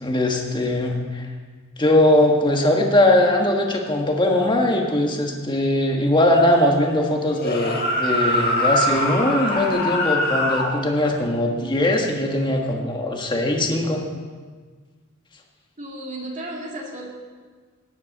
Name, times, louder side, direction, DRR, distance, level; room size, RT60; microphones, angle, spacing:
voice 1, 0.0-1.3 1.8-14.0, left 1 dB, 25° left, 1 dB, 1.6 m, -20 dB
sound 1, 7.3-10.7, left 1 dB, 50° left, 1.9 m, -23 dB
voice 2, 15.8-17.1, right 1 dB, 40° right, -2 dB, 2.6 m, -33 dB
18.0 x 9.7 x 4.1 m, 1.5 s
head